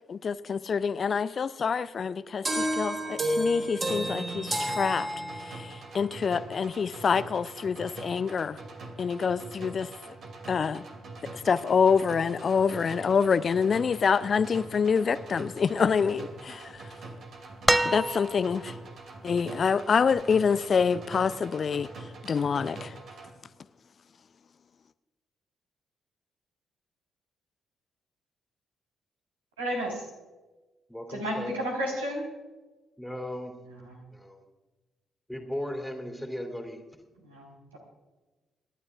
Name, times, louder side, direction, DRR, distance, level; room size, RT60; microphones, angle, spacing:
voice 1, 0.1-5.1 5.4-8.6 9.0-9.9 10.5-10.8 11.3-16.8 17.8-18.8 19.2-21.9 22.2-22.9, left 6 dB, 40° left, 16 dB, 0.5 m, -26 dB
sound 1, 2.5-5.7, right 1 dB, 35° right, 4.0 m, -30 dB
sound 2, 3.9-23.3, right 2 dB, 50° right, 2.6 m, -44 dB
sound 3, 17.7-18.7 20.2-20.3, right 1 dB, 15° right, 0.4 m, -26 dB
voice 2, 29.6-30.0 31.1-32.2 33.7-33.9 37.2-37.8, equal, 80° right, -2 dB, 4.1 m, -32 dB
voice 3, 30.9-31.5 33.0-33.6 34.1-34.4 35.3-36.9, left 1 dB, 5° left, 3 dB, 2.9 m, -37 dB
28.0 x 12.0 x 2.5 m, 1.2 s
figure-of-eight pair, 40°, 0 cm